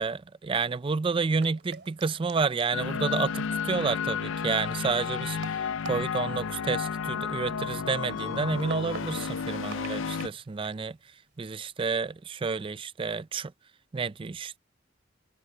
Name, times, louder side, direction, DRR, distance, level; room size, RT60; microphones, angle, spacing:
voice 1, 0.0-11.0 11.4-13.5 13.9-14.6, right 4 dB, 25° right, 0.4 m, -30 dB
sound 1, 1.3-11.8, right 4 dB, 60° right, 2.6 m, -49 dB
sound 2, 2.7-10.3, left 6 dB, 80° left, 0.5 m, -32 dB
head